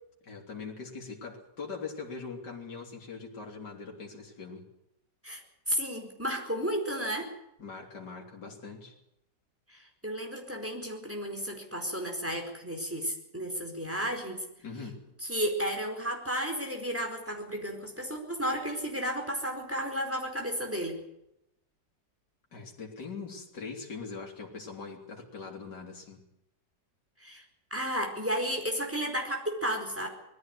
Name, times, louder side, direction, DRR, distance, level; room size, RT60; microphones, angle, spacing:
voice 1, 0.2-4.7 7.6-8.9 14.6-15.0 22.5-26.2, left 4 dB, 70° left, -1 dB, 4.0 m, -42 dB
voice 2, 5.7-7.3 9.7-14.4 15.2-21.0 27.2-27.4 27.7-30.1, equal, 5° right, 2 dB, 4.5 m, -33 dB
20.5 x 15.0 x 9.7 m, 0.84 s
omnidirectional pair, 1.9 m